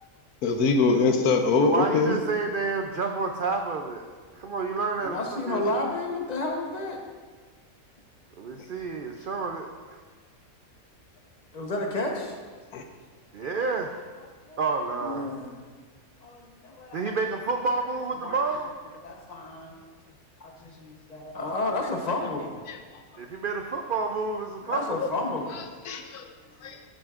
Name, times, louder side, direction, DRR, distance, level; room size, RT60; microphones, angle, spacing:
voice 1, 0.4-2.2 12.7-12.8 22.7-22.8 25.9-26.3 26.6-26.8, left 4 dB, 85° left, 6 dB, 1.2 m, -23 dB
voice 2, 1.6-4.1 4.4-5.7 8.4-10.0 13.3-14.0 14.6-15.3 16.9-18.7 23.2-25.0, right 4 dB, 80° right, 4 dB, 0.4 m, -29 dB
voice 3, 5.0-7.0 11.5-12.4 13.4-13.5 14.4-14.7 15.0-15.5 16.2-17.2 18.2-18.4 19.0-19.8 20.4-22.6 24.6-25.5 26.6-26.8, left 2 dB, 30° left, 1 dB, 0.9 m, -32 dB
12.5 x 7.7 x 2.5 m, 1.5 s
omnidirectional pair, 1.6 m